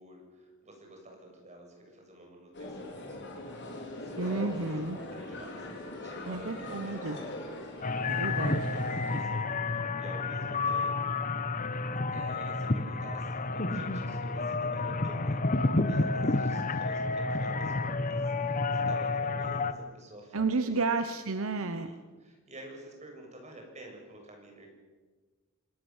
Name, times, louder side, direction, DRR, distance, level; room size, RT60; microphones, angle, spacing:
voice 1, 0.0-4.5 4.9-7.3 8.7-11.2 12.1-21.0 21.5-24.7, right 1 dB, 30° right, 1 dB, 7.2 m, -50 dB
sound 1, 2.5-9.2, left 1 dB, 55° left, 4.4 m, -41 dB
voice 2, 4.2-5.0 6.3-7.2 8.1-8.7 20.3-21.9, right 3 dB, 70° right, 9 dB, 1.1 m, -31 dB
sound 2, 7.8-19.7, left 3 dB, 40° left, 1.2 m, -30 dB
27.0 x 19.0 x 7.3 m, 1.4 s
head